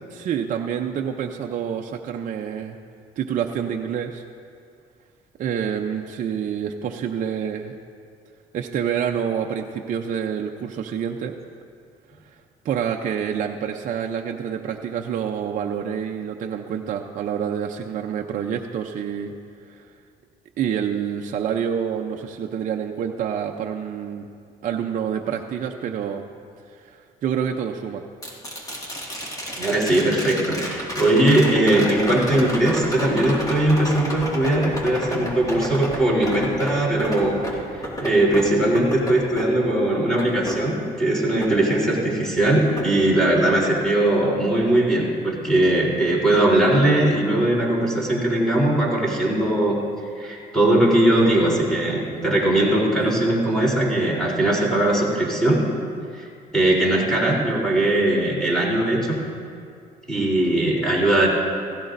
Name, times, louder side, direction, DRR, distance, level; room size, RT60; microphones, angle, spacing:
voice 1, 0.1-2.8 3.2-4.2 5.4-7.7 8.5-11.3 12.6-19.3 19.7-19.9 20.6-24.3 24.6-26.3 26.7-28.0 53.0-53.2, right 8 dB, 50° right, 2 dB, 0.6 m, -27 dB
sound 1, 28.2-42.3 42.8-43.8 46.0-46.1, equal, 20° left, 2.0 m, -32 dB
voice 2, 29.5-37.4 38.0-49.8 50.2-55.6 56.2-56.3 56.5-59.2 60.1-61.3, right 1 dB, 5° left, -4 dB, 3.5 m, -20 dB
16.5 x 16.0 x 2.6 m, 2.3 s
cardioid pair, 110°, 17 cm